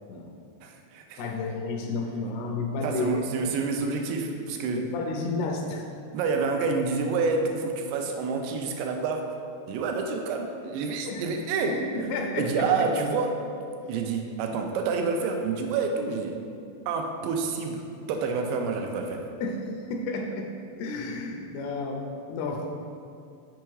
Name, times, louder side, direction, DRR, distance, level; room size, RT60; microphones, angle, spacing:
voice 1, 0.6-1.2 2.8-4.8 6.1-9.3 9.7-11.8 12.4-13.4 13.9-16.4 16.9-19.3, right 4 dB, 85° right, 3 dB, 2.7 m, -28 dB
voice 2, 1.2-3.2 4.7-5.8 11.1-11.2 11.7-12.9 19.4-19.6 19.9-20.5 20.8-22.7, left 3 dB, 80° left, 1 dB, 2.5 m, -31 dB
6.9 x 4.6 x 4.7 m, 2.5 s
omnidirectional pair, 4.9 m